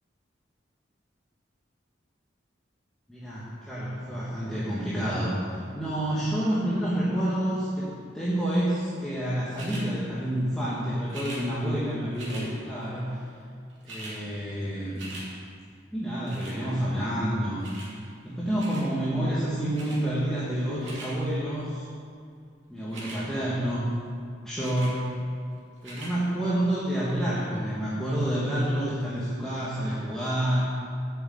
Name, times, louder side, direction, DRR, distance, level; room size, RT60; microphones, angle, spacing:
voice 1, 3.1-7.9 8.1-13.2 13.8-15.2 15.9-17.7 18.2-21.9 22.7-24.0 24.4-25.0 25.8-30.6, right 1 dB, 5° left, -10 dB, 1.3 m, -28 dB
sound 1, 9.5-9.9 11.1-11.4 12.2-12.5 13.4-13.5 13.7-14.2 14.6-15.3 16.3-16.6 17.6-17.9 18.6-18.9 19.7-20.0 20.6-21.1 22.8-23.2 24.6-25.0 25.8-26.1 26.8-26.9, right 2 dB, 80° right, 2.6 m, -42 dB
7.8 x 6.1 x 7.8 m, 2.2 s
head